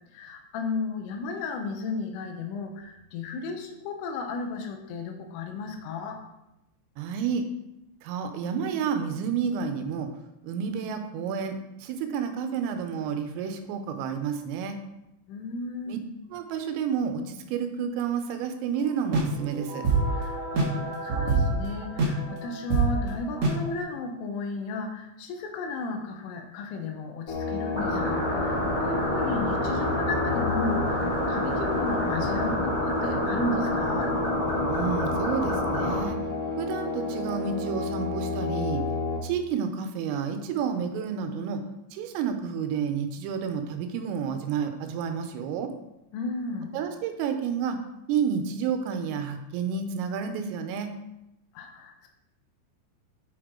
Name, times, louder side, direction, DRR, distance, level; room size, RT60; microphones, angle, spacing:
voice 1, 0.1-6.2 15.3-16.0 20.2-34.1 46.1-46.7 51.6-52.1, left 3 dB, 80° left, 4 dB, 3.4 m, -34 dB
voice 2, 7.0-7.4 8.0-10.1 10.4-14.8 15.9-16.0 16.3-19.9 34.7-36.2 36.6-38.8 39.2-41.6 41.9-45.7 46.7-47.8 48.1-50.9, right 7 dB, 80° right, 7 dB, 3.4 m, -30 dB
sound 1, 19.1-23.7, right 3 dB, 65° right, 1.7 m, -26 dB
sound 2, 27.3-39.2, left 3 dB, 30° left, 4.0 m, -31 dB
sound 3, 27.7-36.0, equal, 15° left, 1.1 m, -28 dB
8.7 x 8.3 x 3.8 m, 0.88 s
omnidirectional pair, 6.0 m